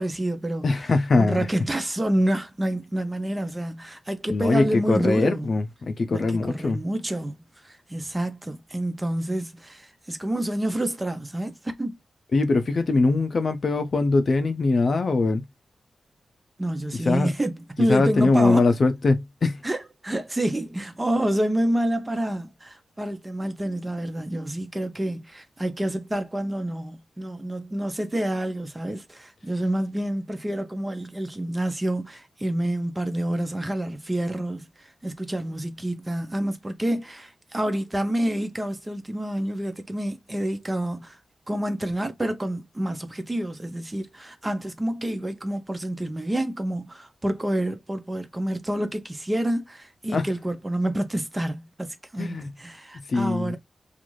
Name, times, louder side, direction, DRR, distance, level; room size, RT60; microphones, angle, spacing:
voice 1, 0.0-0.7 1.2-5.5 6.1-12.0 16.6-18.6 19.6-19.8 20.0-41.2 41.5-53.6, right 1 dB, 20° right, 0.6 m, -28 dB
voice 2, 0.6-1.5 4.3-6.8 12.3-15.4 16.9-17.3 17.9-19.6 50.1-50.2 52.2-52.5 53.1-53.6, left 3 dB, 55° left, 0.5 m, -22 dB
2.5 x 2.4 x 3.0 m
wide cardioid pair, 100°, 0 cm